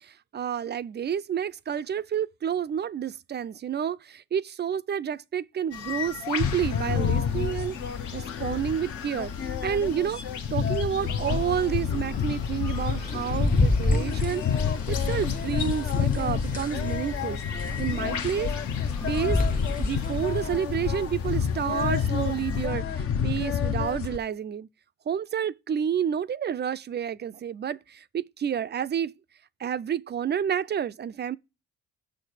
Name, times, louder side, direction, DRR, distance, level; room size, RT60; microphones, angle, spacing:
voice 1, 0.0-7.8 8.1-10.2 10.5-18.5 19.0-19.4 19.8-24.7 25.1-29.1 29.6-31.4, right 8 dB, 35° right, 0.4 m, -30 dB
sound 1, 5.7-22.7, left 7 dB, 80° left, 1.1 m, -40 dB
sound 2, 6.4-24.2, left 7 dB, 45° left, 0.7 m, -29 dB
sound 3, 12.7-20.5, left 2 dB, 30° left, 1.0 m, -30 dB
6.4 x 6.3 x 6.6 m
cardioid pair, 90°, 30 cm